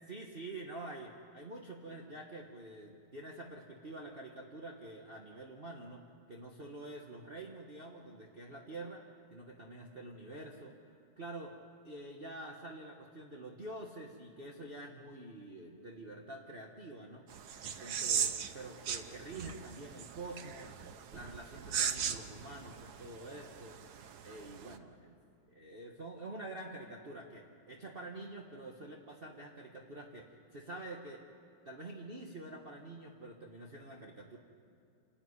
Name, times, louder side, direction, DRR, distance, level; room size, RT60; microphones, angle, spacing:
voice 1, 0.1-6.0 6.3-10.7 11.2-11.5 11.8-17.3 17.6-20.7 21.1-23.8 24.2-25.1 25.5-31.2 31.6-34.4, right 2 dB, 30° right, 0 dB, 1.5 m, -47 dB
sound 1, 17.3-24.8, right 8 dB, 60° right, 1.3 m, -39 dB
28.5 x 14.0 x 9.7 m, 2.6 s
omnidirectional pair, 2.1 m